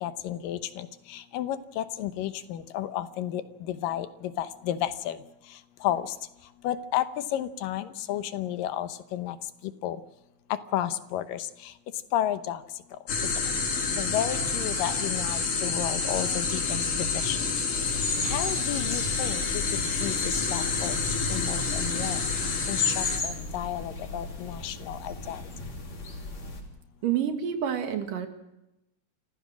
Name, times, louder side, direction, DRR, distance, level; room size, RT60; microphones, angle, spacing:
voice 1, 0.0-5.2 5.8-6.1 6.6-9.4 9.8-10.0 10.7-11.5 12.1-12.6 13.9-17.4 18.2-19.6 20.0-21.0 21.3-22.2 22.7-25.4, left 11 dB, 85° left, 11 dB, 2.7 m, -32 dB
sound 1, 13.1-23.2, left 4 dB, 70° left, 4.5 m, -28 dB
sound 2, 17.7-26.6, left 3 dB, 55° left, 4.6 m, -35 dB
voice 2, 27.0-28.3, right 9 dB, 80° right, 6 dB, 3.4 m, -28 dB
28.5 x 15.5 x 6.2 m, 0.92 s
omnidirectional pair, 3.8 m